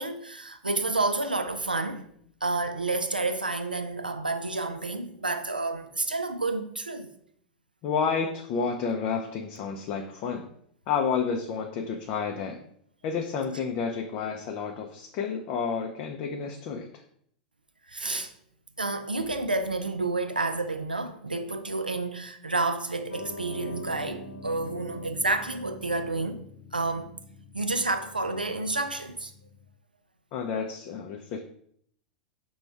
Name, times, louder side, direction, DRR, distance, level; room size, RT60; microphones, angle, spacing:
voice 1, 0.0-2.0 2.4-7.1 17.9-18.3 18.8-26.4 26.7-27.1 27.5-29.3, right 2 dB, 90° right, 0.4 m, -30 dB
voice 2, 7.8-10.4 10.9-12.6 13.0-17.0 30.3-31.4, left 6 dB, 40° left, 0.5 m, -30 dB
Piano, 23.1-29.6, left 1 dB, 80° left, 0.9 m, -44 dB
5.9 x 2.3 x 3.3 m
figure-of-eight pair, 90°, 5 cm